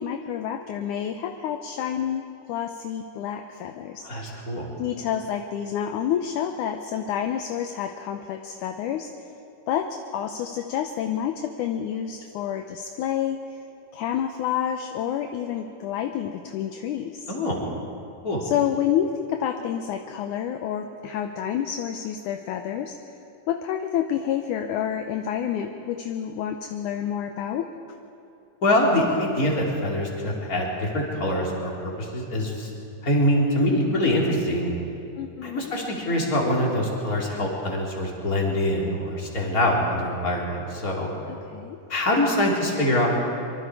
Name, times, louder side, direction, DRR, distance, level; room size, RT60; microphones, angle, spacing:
voice 1, 0.0-4.4 4.8-9.3 9.7-13.6 13.9-17.3 18.4-23.2 23.5-27.7 35.2-35.7 41.3-41.8, left 9 dB, 75° left, 6 dB, 2.1 m, -29 dB
voice 2, 4.1-4.7 17.3-17.6 18.2-18.4 28.6-31.7 32.0-32.7 33.0-34.7 35.4-41.1 41.9-43.1, left 1 dB, 25° left, -2 dB, 3.6 m, -24 dB
25.0 x 24.0 x 4.8 m, 2.8 s
omnidirectional pair, 4.0 m